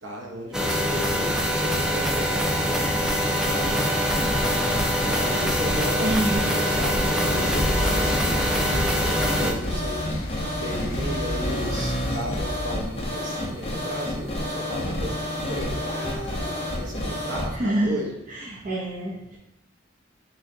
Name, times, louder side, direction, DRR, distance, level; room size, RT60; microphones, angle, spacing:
voice 1, 0.0-3.9 5.1-10.0 10.6-18.1, equal, 60° right, -1 dB, 1.0 m, -35 dB
sound 1, 0.5-9.5, equal, 5° right, 0.4 m, -24 dB
sound 2, 2.3-17.5, left 1 dB, 30° left, 0.8 m, -30 dB
voice 2, 6.0-6.4 17.5-17.9 18.3-19.4, right 1 dB, 40° right, -5 dB, 0.6 m, -26 dB
sound 3, 7.2-12.8, left 1 dB, 90° left, 0.9 m, -31 dB
6.2 x 3.1 x 2.7 m, 0.93 s
head